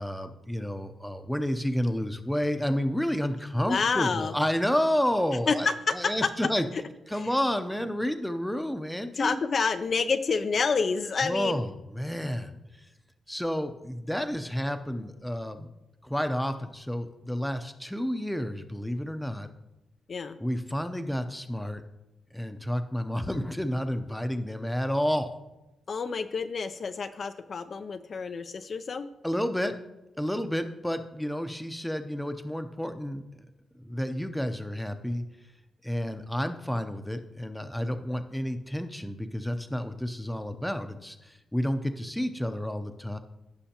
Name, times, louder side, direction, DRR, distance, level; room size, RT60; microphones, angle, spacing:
voice 1, 0.0-6.7 7.1-9.4 11.2-11.7 11.9-12.6 13.3-15.7 16.0-19.5 20.4-21.8 22.3-25.3 29.2-29.7 30.2-33.2 33.8-35.2 35.8-43.2, equal, 5° left, 8 dB, 0.6 m, -30 dB
voice 2, 3.7-4.3 5.5-6.3 7.1-7.3 9.2-11.6 20.1-20.4 25.9-29.1, left 5 dB, 50° left, 9 dB, 0.4 m, -28 dB
15.5 x 5.6 x 2.9 m, 0.97 s
cardioid pair, 105°, 0 cm